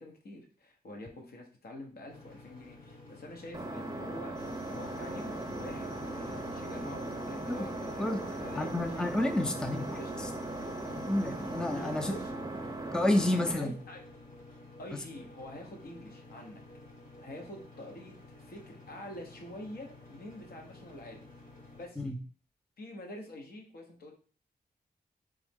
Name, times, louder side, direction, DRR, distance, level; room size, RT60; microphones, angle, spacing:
voice 1, 0.0-4.4 4.7-9.3 10.0-10.3 11.7-12.3 13.5-14.0 14.8-16.6 17.2-21.2 21.7-22.1 22.8-24.1, left 1 dB, 75° left, 2 dB, 1.1 m, -46 dB
sound 1, 2.1-21.9, left 2 dB, 55° left, 1.6 m, -52 dB
Engine, 3.5-13.5, right 2 dB, 25° right, 0.7 m, -39 dB
sound 2, 4.4-12.3, left 1 dB, 25° left, 0.9 m, -49 dB
voice 2, 8.6-10.3 10.9-12.1 12.9-13.7 14.9-15.0 22.0-22.2, left 1 dB, 5° left, 6 dB, 0.5 m, -30 dB
3.5 x 3.0 x 3.6 m, 0.40 s
cardioid pair, 70°, 16 cm